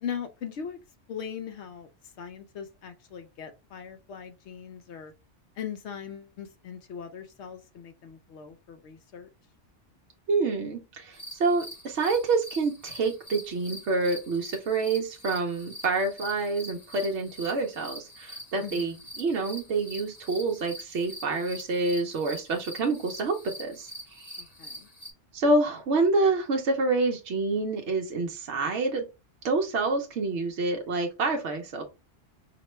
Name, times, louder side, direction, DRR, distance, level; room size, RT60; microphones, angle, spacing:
voice 1, 0.0-0.8 1.1-1.9 2.2-5.1 5.6-9.3 18.6-19.0 24.4-24.9, left 7 dB, 70° left, 0.9 m, -40 dB
voice 2, 10.3-24.3 25.3-29.1 29.4-31.8, right 3 dB, 75° right, 1.0 m, -27 dB
sound 1, 11.1-25.1, equal, 35° left, 1.0 m, -44 dB
4.9 x 2.2 x 3.0 m
omnidirectional pair, 1.2 m